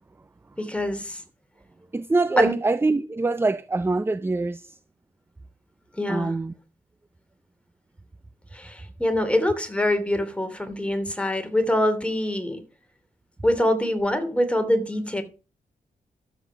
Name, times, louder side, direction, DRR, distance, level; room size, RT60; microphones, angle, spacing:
voice 1, 0.6-1.2 2.4-2.5 6.0-6.3 8.5-12.6 13.4-15.2, left 1 dB, 5° left, 3.0 m, -24 dB
voice 2, 1.9-4.8 6.1-6.5, right 3 dB, 15° right, 0.5 m, -24 dB
12.5 x 8.1 x 5.9 m
wide cardioid pair, 100°, 16 cm